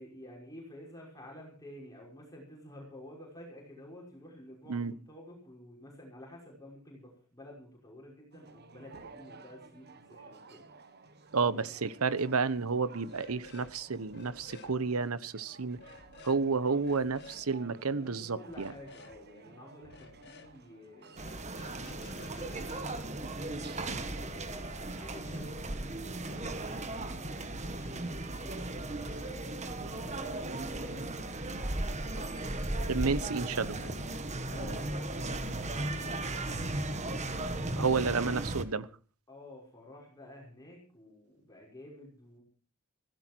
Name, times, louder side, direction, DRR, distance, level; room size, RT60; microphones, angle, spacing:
voice 1, 0.0-11.7 16.3-16.8 18.0-21.2 21.9-25.6 27.6-33.7 34.4-37.1 37.6-38.4 39.3-42.4, left 1 dB, 15° left, -2 dB, 5.6 m, -51 dB
sound 1, 8.3-26.9, right 4 dB, 50° right, 1.4 m, -55 dB
voice 2, 11.3-15.8 16.2-18.7 32.9-33.7 37.8-38.9, right 4 dB, 80° right, 17 dB, 0.9 m, -31 dB
sound 2, 13.1-13.8 14.0-14.8 15.8-16.4 16.8-17.4 18.5-19.2 19.8-20.5 21.1-23.8, left 3 dB, 55° left, 2.3 m, -53 dB
sound 3, 21.2-38.6, right 2 dB, 35° right, 1.5 m, -36 dB
16.5 x 15.5 x 4.5 m, 0.40 s
head